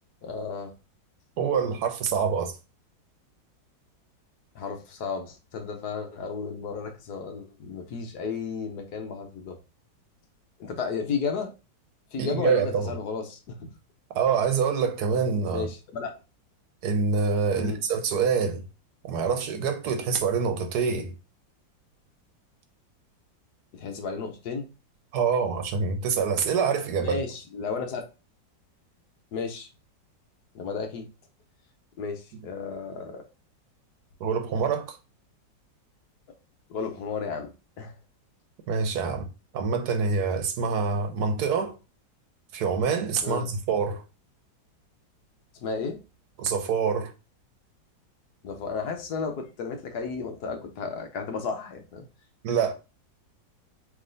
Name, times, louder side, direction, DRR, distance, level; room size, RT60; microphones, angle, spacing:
voice 1, 0.2-0.7 4.5-9.6 10.6-11.5 12.1-13.4 15.5-16.1 17.6-17.8 23.7-24.7 27.0-28.1 29.3-29.7 30.5-31.1 32.0-33.2 36.7-37.5 37.8-37.9 43.2-43.5 45.6-46.0 48.4-52.0 52.5-52.6, left 5 dB, 65° left, 1.3 m, -33 dB
voice 2, 1.4-2.5 12.2-12.9 14.1-15.7 16.8-18.6 19.0-21.1 25.1-27.2 34.2-35.0 38.7-41.8 42.5-44.0 46.4-47.1 52.4-52.7, right 5 dB, 65° right, 1.2 m, -26 dB
3.5 x 3.1 x 3.7 m
omnidirectional pair, 2.0 m